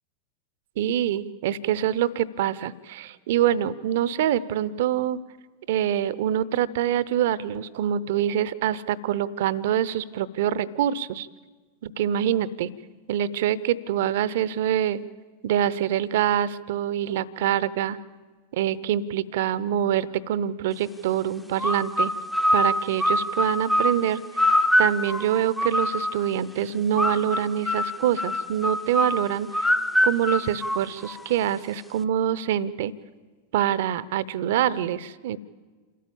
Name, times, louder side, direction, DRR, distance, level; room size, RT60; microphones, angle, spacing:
voice 1, 0.8-5.2 5.7-11.3 11.8-12.7 13.1-15.0 15.4-18.0 18.5-22.1 22.5-24.2 24.8-29.7 30.0-32.9 33.5-35.4, right 10 dB, 55° right, 19 dB, 0.7 m, -25 dB
sound 1, 21.6-26.3 27.0-31.4, left 1 dB, 5° left, 0.7 m, -25 dB
28.0 x 13.5 x 8.7 m, 1.5 s
figure-of-eight pair, 90°, 0 cm